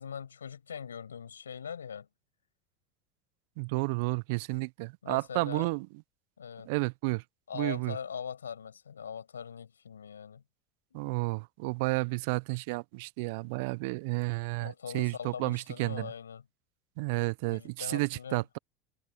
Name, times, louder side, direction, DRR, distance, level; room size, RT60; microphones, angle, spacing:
voice 1, 0.0-2.1 4.5-4.6 5.0-5.7 6.4-6.7 7.5-10.4 14.6-16.4 17.5-18.4, left 7 dB, 85° left, 7.0 m, -41 dB
voice 2, 3.6-5.9 6.6-7.2 7.5-8.0 10.9-16.1 17.0-18.6, right 27 dB, 65° right, 0.8 m, -31 dB
figure-of-eight pair, 75°, 0 cm